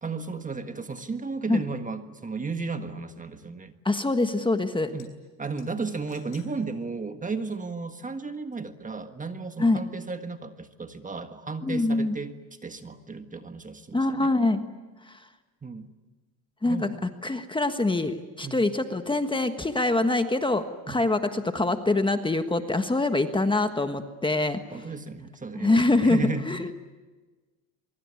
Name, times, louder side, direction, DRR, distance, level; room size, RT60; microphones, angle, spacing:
voice 1, 0.0-3.7 4.9-5.1 5.4-12.3 12.6-14.3 15.6-15.9 16.6-17.0 18.4-18.6 20.9-21.1 24.7-26.7, right 4 dB, 20° right, 8 dB, 1.5 m, -34 dB
voice 2, 3.8-4.9 9.6-9.8 11.6-12.2 13.9-14.6 15.1-15.2 16.6-16.9 17.2-24.6 25.6-26.2 26.5-26.7, left 2 dB, 10° left, 8 dB, 1.4 m, -24 dB
sound 1, 4.9-5.1 5.4-6.5 6.9-7.0 8.5-8.6, left 12 dB, 80° left, 6.3 m, -55 dB
24.0 x 23.5 x 9.7 m, 1.3 s
cardioid pair, 115°, 42 cm